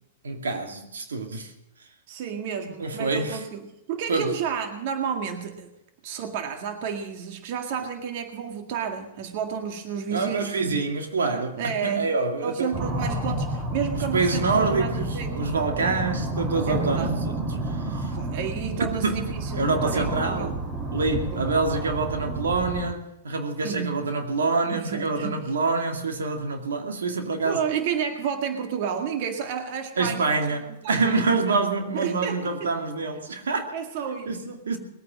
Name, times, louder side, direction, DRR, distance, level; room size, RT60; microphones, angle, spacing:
voice 1, 0.2-1.5 2.8-3.4 4.1-4.3 10.1-12.8 13.2-13.4 14.1-17.4 17.7-18.1 18.8-20.5 20.9-27.6 30.0-33.7 34.3-34.8, right 3 dB, 80° right, 2.3 m, -26 dB
voice 2, 2.1-5.7 6.0-10.7 11.6-12.1 12.4-15.3 15.8-16.1 16.7-17.2 18.1-20.6 21.3-21.5 23.6-24.1 24.7-25.5 27.4-30.3 30.8-31.2 31.5-31.6 31.9-32.7 33.7-34.6, right 7 dB, 55° right, 1.9 m, -31 dB
sound 1, 12.7-22.9, right 2 dB, 30° right, 2.5 m, -30 dB
20.5 x 9.2 x 7.6 m
hypercardioid pair, 110°, 0 cm